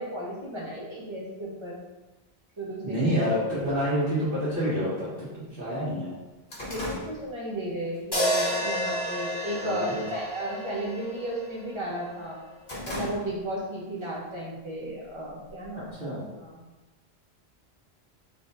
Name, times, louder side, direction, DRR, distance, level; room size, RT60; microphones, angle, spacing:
voice 1, 0.0-1.8 2.6-3.2 6.7-12.4 12.8-16.6, right 1 dB, 30° right, -4 dB, 1.1 m, -34 dB
voice 2, 2.8-6.2 9.5-10.0 15.7-16.3, equal, 55° right, -9 dB, 1.7 m, -28 dB
sound 1, 5.6-8.0 8.4-8.7 9.2-9.7 9.9-10.3 10.6-11.8 12.2-13.7 14.0-14.1 15.0-15.9, left 1 dB, 55° left, 1.6 m, -39 dB
sound 2, 8.1-12.4, equal, 25° left, 1.1 m, -31 dB
4.0 x 3.3 x 3.9 m, 1.1 s
omnidirectional pair, 1.1 m